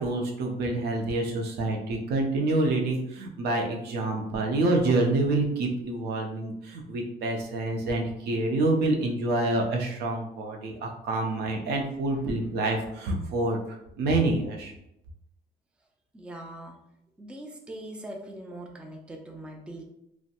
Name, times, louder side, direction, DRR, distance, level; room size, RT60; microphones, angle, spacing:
voice 1, 0.0-13.6 14.0-14.7, right 2 dB, 75° right, 1 dB, 0.6 m, -27 dB
voice 2, 16.1-16.8 17.2-19.8, right 1 dB, 5° right, 1 dB, 0.3 m, -42 dB
2.7 x 2.1 x 2.5 m, 0.81 s
cardioid pair, 110°, 17 cm